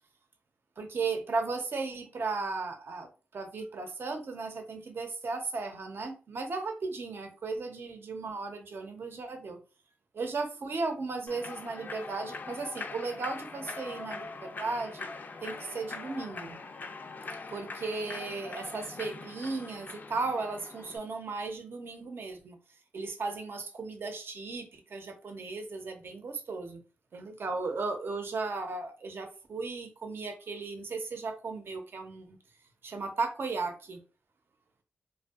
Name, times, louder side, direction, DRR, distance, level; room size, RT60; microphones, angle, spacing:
voice 1, 0.8-9.6 10.1-15.1 15.4-16.6 17.5-22.6 22.9-26.8 27.1-32.4 32.8-34.0, right 3 dB, 60° right, 5 dB, 0.6 m, -36 dB
Human voice / Clapping / Cheering, 11.3-21.0, left 3 dB, 40° left, 0.3 m, -42 dB
2.6 x 2.2 x 2.3 m, 0.33 s
cardioid pair, 70°, 4 cm